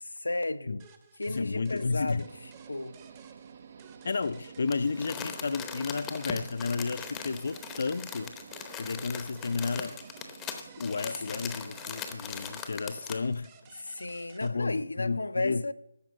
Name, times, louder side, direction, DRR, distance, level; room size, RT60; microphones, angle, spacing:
voice 1, 0.2-0.8 1.2-2.3 2.7-3.0 11.1-11.4 13.8-15.7, left 2 dB, 90° left, 0.7 m, -34 dB
sound 1, 0.8-14.5, right 7 dB, 20° right, 1.0 m, -57 dB
voice 2, 1.3-2.2 4.0-8.3 8.8-10.0 10.8-13.5 14.4-15.6, left 4 dB, 55° left, 0.5 m, -32 dB
sound 2, 2.2-12.6, right 6 dB, 40° right, 0.6 m, -51 dB
Crumpling crinkling, 4.7-13.3 13.8-13.9, left 7 dB, 10° left, 0.8 m, -40 dB
13.5 x 5.2 x 8.9 m
figure-of-eight pair, 165°, 0 cm